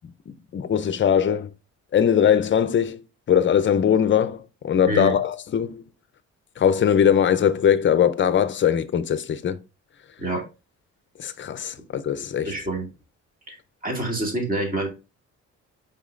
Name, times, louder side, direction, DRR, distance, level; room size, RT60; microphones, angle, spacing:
voice 1, 0.3-1.5 1.9-3.0 3.3-5.8 6.6-9.6 11.2-12.5, left 8 dB, 40° left, 0.6 m, -21 dB
voice 2, 12.4-12.9 13.5-13.6 13.8-14.9, right 2 dB, 30° right, 2.2 m, -26 dB
5.4 x 3.9 x 2.5 m
cardioid pair, 90°, 30 cm